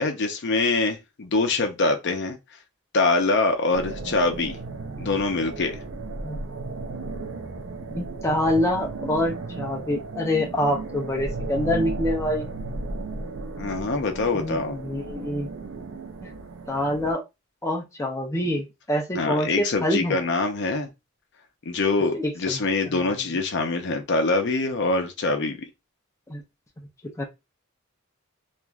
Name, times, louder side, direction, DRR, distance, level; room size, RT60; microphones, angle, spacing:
voice 1, 0.0-2.4 2.9-4.6 5.0-5.8 13.6-14.8 19.1-20.9 21.7-25.7, left 3 dB, 55° left, 0.6 m, -24 dB
sound 1, 3.7-17.1, right 3 dB, 65° right, 0.5 m, -35 dB
voice 2, 7.9-12.5 14.3-15.5 16.2-16.3 16.7-17.2 17.6-20.2 22.1-22.6 23.0-23.1 26.3-26.4 27.2-27.3, left 1 dB, 15° left, 0.5 m, -26 dB
3.1 x 2.5 x 2.3 m
head